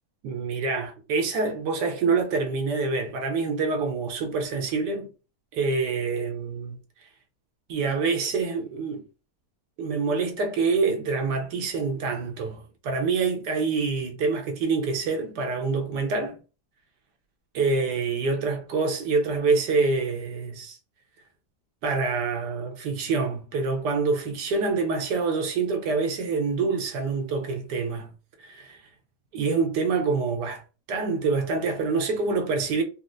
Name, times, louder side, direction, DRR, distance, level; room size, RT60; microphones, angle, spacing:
voice 1, 0.2-5.1 5.5-6.8 7.7-9.0 9.8-16.4 17.5-20.8 21.8-28.1 28.4-28.8 29.3-30.6 30.9-32.8, right 4 dB, 80° right, 1.3 m, -26 dB
4.1 x 2.1 x 2.5 m
omnidirectional pair, 1.8 m